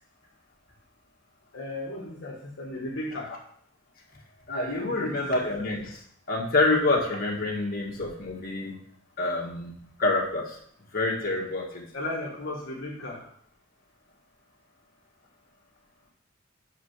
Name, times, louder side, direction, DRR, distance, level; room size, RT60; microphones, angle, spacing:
voice 1, 1.5-3.3 4.8-5.2 5.5-5.7 11.9-13.2, left 1 dB, 60° left, -4 dB, 1.3 m, -35 dB
voice 2, 4.5-5.9 6.3-8.8 9.2-10.6 10.9-11.8, left 2 dB, 45° left, -2 dB, 1.8 m, -27 dB
5.6 x 4.9 x 6.4 m, 0.63 s
head